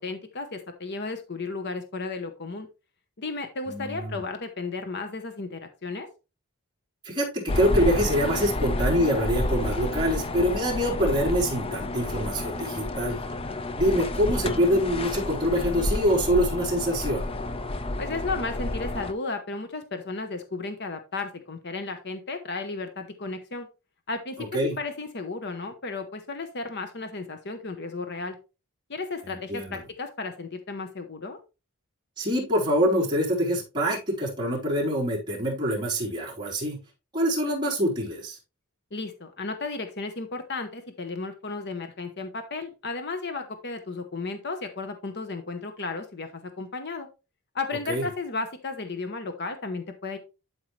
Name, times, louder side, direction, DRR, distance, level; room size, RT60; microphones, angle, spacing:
voice 1, 0.0-2.7 3.2-6.1 18.0-23.7 24.1-28.4 28.9-31.4 38.9-47.1 47.5-50.2, left 3 dB, 50° left, 7 dB, 0.9 m, -34 dB
voice 2, 3.7-4.2 7.0-13.2 13.8-17.3 24.4-24.8 29.2-29.8 32.2-36.8 37.1-38.4 47.9-48.1, equal, 20° right, -5 dB, 3.8 m, -25 dB
sound 1, 7.5-19.1, left 2 dB, 25° left, 0.5 m, -30 dB
11.5 x 4.7 x 3.2 m, 0.29 s
head